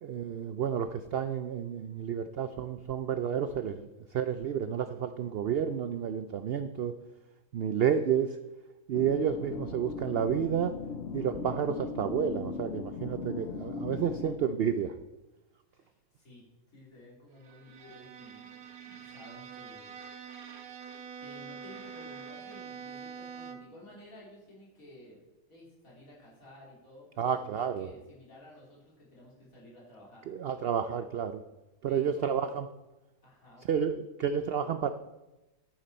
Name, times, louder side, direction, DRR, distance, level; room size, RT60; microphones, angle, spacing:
voice 1, 0.0-6.9 7.5-8.4 8.9-10.8 11.1-14.9 27.2-27.9 30.3-31.4 31.8-32.7 33.7-34.9, right 8 dB, 70° right, 10 dB, 0.5 m, -30 dB
sound 1, 8.9-14.4, left 5 dB, 55° left, 0.9 m, -38 dB
voice 2, 15.7-16.4 16.7-20.0 21.2-25.2 25.5-30.2 31.9-32.5 33.2-33.7, left 1 dB, 70° left, -5 dB, 4.0 m, -53 dB
Bowed string instrument, 17.4-23.8, right 6 dB, 85° right, 1.4 m, -45 dB
10.5 x 9.2 x 4.4 m, 1.0 s
omnidirectional pair, 1.5 m